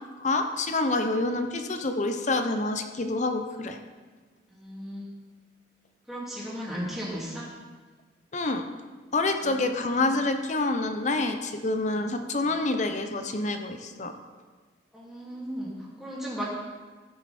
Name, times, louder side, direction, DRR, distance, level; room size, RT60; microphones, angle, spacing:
voice 1, 0.2-3.8 8.3-8.6 9.1-14.1, left 2 dB, 40° left, 7 dB, 0.7 m, -27 dB
voice 2, 4.5-5.1 6.1-7.5 9.4-9.7 14.9-15.7 16.0-16.4, equal, ahead, -6 dB, 2.7 m, -35 dB
15.0 x 6.7 x 4.3 m, 1.4 s
head